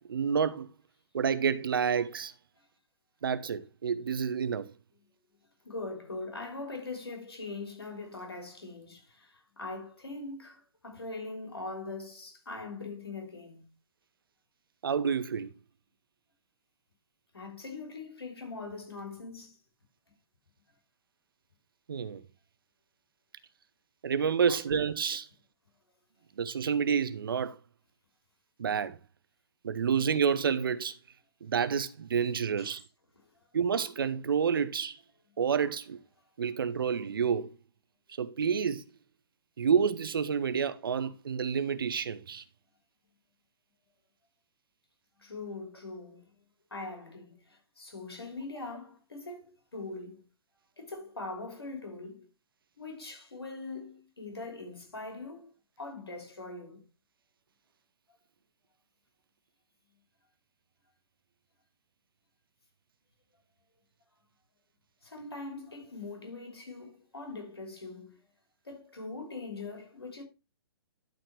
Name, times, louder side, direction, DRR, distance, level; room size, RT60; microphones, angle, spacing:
voice 1, 0.1-0.7 1.1-2.3 3.2-4.7 14.8-15.5 21.9-22.2 24.0-25.3 26.4-27.6 28.6-29.0 29.6-30.9 31.4-32.8 33.5-35.0 35.4-36.0 36.4-37.5 38.2-38.8 39.6-42.4, right 7 dB, 60° right, 0.8 m, -29 dB
voice 2, 5.6-13.7 17.3-19.6 24.5-24.6 32.6-32.8 45.2-46.2 46.7-50.2 50.8-52.3 52.8-55.5 55.8-56.8 65.0-68.2 68.7-70.2, left 3 dB, 75° left, 3.3 m, -42 dB
12.0 x 4.4 x 4.4 m
figure-of-eight pair, 120°, 13 cm